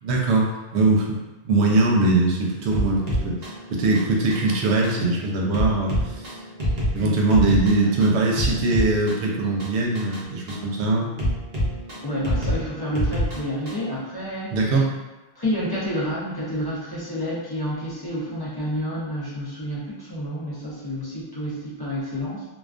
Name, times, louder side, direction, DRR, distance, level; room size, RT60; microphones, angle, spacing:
voice 1, 0.0-1.2 1.4-3.3 3.7-6.3 6.9-11.1 14.5-14.9, right 2 dB, 85° right, -1 dB, 0.9 m, -21 dB
sound 1, 2.7-13.9, equal, 45° right, 0.6 m, -28 dB
voice 2, 12.0-14.6 15.4-22.5, equal, 30° left, -8 dB, 0.4 m, -29 dB
2.3 x 2.2 x 2.4 m, 1.1 s
omnidirectional pair, 1.1 m